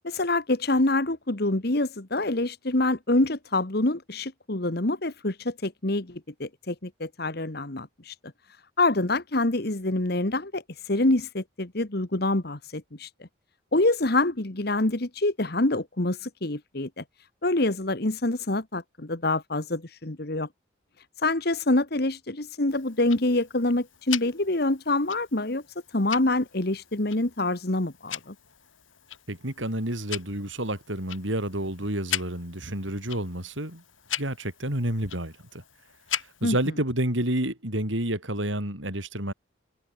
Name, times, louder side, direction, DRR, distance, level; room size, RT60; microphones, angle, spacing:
voice 1, 0.0-8.1 8.8-13.1 13.7-17.0 17.4-20.5 21.2-25.6 25.9-28.3 36.4-36.6, left 2 dB, 55° left, 1.7 m, -26 dB
Tick-tock, 22.7-36.7, left 10 dB, 90° left, 6.5 m, -40 dB
voice 2, 29.3-33.8 34.2-35.6 36.4-39.3, right 1 dB, 75° right, 7.7 m, -29 dB
open air
head